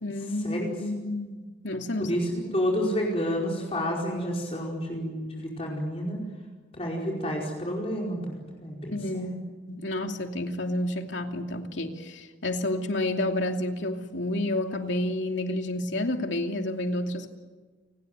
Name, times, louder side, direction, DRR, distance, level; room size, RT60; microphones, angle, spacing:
voice 1, 0.0-2.1 2.5-2.6 8.9-9.3 9.7-17.3, left 1 dB, 80° left, 4 dB, 2.7 m, -30 dB
voice 2, 2.0-6.2 6.7-8.3 8.6-9.4, equal, 30° left, -2 dB, 5.0 m, -30 dB
29.5 x 19.5 x 9.5 m, 1.3 s
head